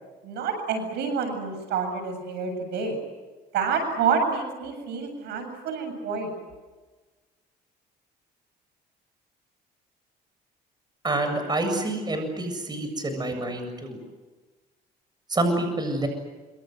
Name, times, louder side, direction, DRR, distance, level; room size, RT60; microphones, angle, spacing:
voice 1, 0.2-3.0 3.5-6.3, right 5 dB, 75° right, 6 dB, 7.7 m, -28 dB
voice 2, 11.0-14.0 15.3-16.1, right 2 dB, 25° right, 7 dB, 7.5 m, -27 dB
26.5 x 26.0 x 7.9 m, 1.3 s
cardioid pair, 110°, 17 cm